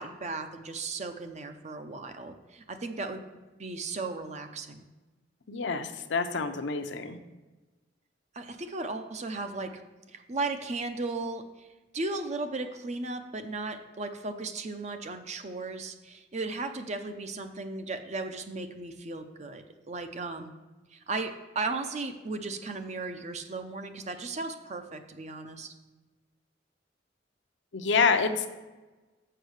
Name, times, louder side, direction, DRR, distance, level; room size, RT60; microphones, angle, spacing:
voice 1, 0.0-3.2 3.6-4.8 8.3-9.8 10.1-11.7 11.9-20.5 20.9-25.7, right 3 dB, 40° right, 7 dB, 0.6 m, -36 dB
voice 2, 5.5-7.2 27.7-28.5, left 5 dB, 70° left, 8 dB, 0.6 m, -27 dB
6.7 x 5.4 x 6.4 m, 1.2 s
head